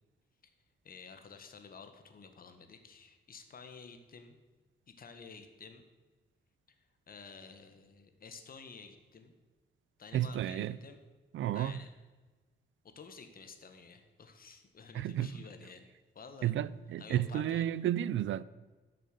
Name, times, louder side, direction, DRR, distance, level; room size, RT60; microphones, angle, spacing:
voice 1, 0.8-4.4 4.9-5.8 7.1-9.3 10.0-11.0 11.5-11.9 12.9-15.8 16.1-16.5 17.0-17.7, left 5 dB, 45° left, 1.5 m, -51 dB
voice 2, 10.1-10.8 11.3-11.8 14.9-15.3 16.4-18.4, right 11 dB, 75° right, 0.5 m, -32 dB
12.5 x 6.7 x 6.8 m
cardioid pair, 130°, 20 cm